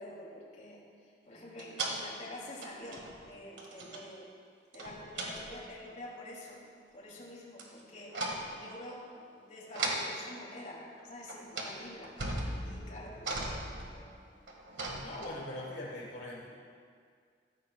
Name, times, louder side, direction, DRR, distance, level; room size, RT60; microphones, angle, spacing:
voice 1, 0.0-4.3 4.7-6.6 6.9-14.4, left 1 dB, 45° left, -3 dB, 2.6 m, -48 dB
sound 1, 1.6-2.0 2.6-3.3 3.6-4.0 4.7-5.7 7.6-7.8 8.1-8.5 9.7-10.1 11.0-11.1 11.3-11.7 12.0-15.6, right 2 dB, 80° right, 1.6 m, -38 dB
voice 2, 13.0-13.3 14.8-16.5, left 1 dB, 80° left, -3 dB, 1.3 m, -42 dB
15.0 x 13.5 x 2.3 m, 2.1 s
head